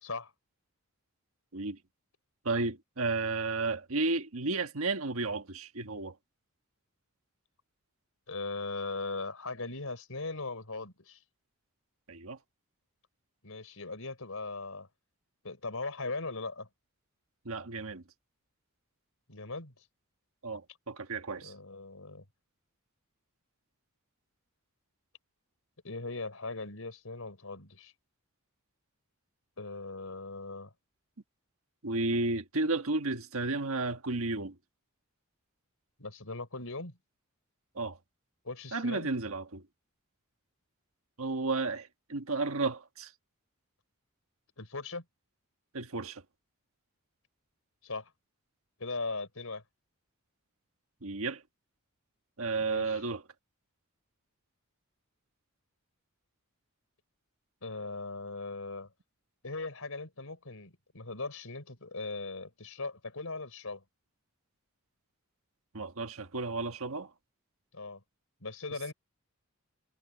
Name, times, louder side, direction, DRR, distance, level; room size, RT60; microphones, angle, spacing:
voice 1, 0.0-0.3 8.3-11.2 13.4-14.9 15.4-16.7 19.3-19.7 21.4-22.2 25.8-27.9 29.6-30.7 36.0-37.0 38.4-39.1 44.6-45.0 47.8-48.1 48.8-49.6 52.6-53.0 57.6-58.9 59.4-63.8 67.7-68.0 68.4-68.9, left 3 dB, 75° left, 4.4 m, -39 dB
voice 2, 2.4-6.1 12.1-12.4 17.4-18.0 20.4-21.5 31.8-34.5 37.7-38.0 38.7-39.6 41.2-43.1 45.7-46.2 51.0-51.4 52.4-53.2 65.7-67.1, right 3 dB, 75° right, 1.5 m, -32 dB
head